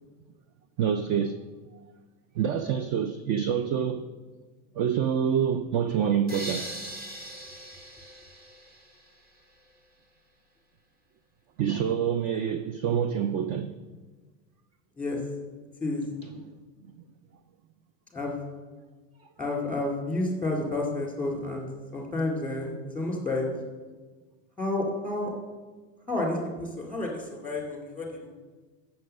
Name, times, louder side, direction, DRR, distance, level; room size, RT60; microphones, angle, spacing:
voice 1, 0.8-1.4 2.4-4.0 4.7-6.7 11.6-13.8 16.2-16.5, right 8 dB, 40° right, 0.4 m, -27 dB
sound 1, 6.3-9.3, right 1 dB, 20° right, 1.2 m, -40 dB
voice 2, 19.4-23.5 24.6-25.3 26.1-28.3, left 2 dB, 5° left, 2.2 m, -30 dB
7.5 x 7.0 x 6.4 m
supercardioid pair, 145°, 41 cm